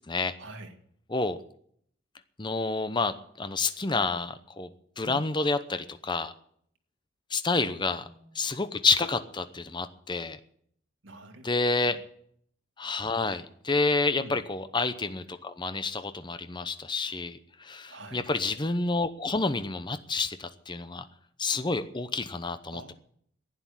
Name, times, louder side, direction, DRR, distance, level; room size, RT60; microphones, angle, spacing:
voice 1, 0.4-0.8 5.0-5.3 7.5-8.5 11.0-11.6 11.8-12.0 14.1-14.4 17.9-18.3 22.7-22.9, right 1 dB, 80° right, 3 dB, 2.1 m, -46 dB
voice 2, 2.4-4.7 5.0-6.3 7.3-8.0 8.3-10.4 11.4-12.0 12.8-21.1 21.4-22.9, left 3 dB, 25° left, 10 dB, 0.8 m, -29 dB
11.5 x 9.8 x 9.6 m, 0.65 s
head